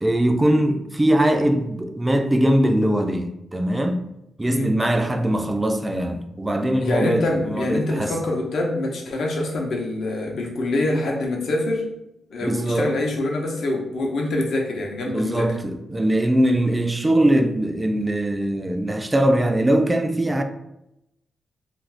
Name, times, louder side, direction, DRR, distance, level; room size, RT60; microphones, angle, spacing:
voice 1, 0.0-4.0 4.4-8.1 12.4-12.9 15.1-20.4, right 1 dB, 20° right, 0.4 m, -21 dB
voice 2, 6.8-11.9 12.3-15.5, left 2 dB, 75° left, 0.7 m, -25 dB
2.5 x 2.4 x 3.2 m
cardioid pair, 75°, 0 cm